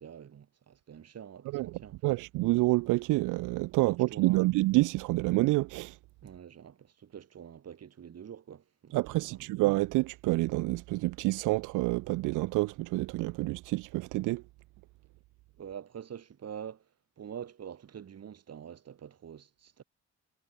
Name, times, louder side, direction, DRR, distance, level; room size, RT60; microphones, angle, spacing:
voice 1, 0.0-2.0 3.9-4.5 6.2-9.5 15.6-19.8, right 8 dB, 55° right, 5.5 m, -46 dB
voice 2, 2.0-6.0 8.9-14.4, right 21 dB, 90° right, 0.5 m, -28 dB
cardioid pair, 90°, 30 cm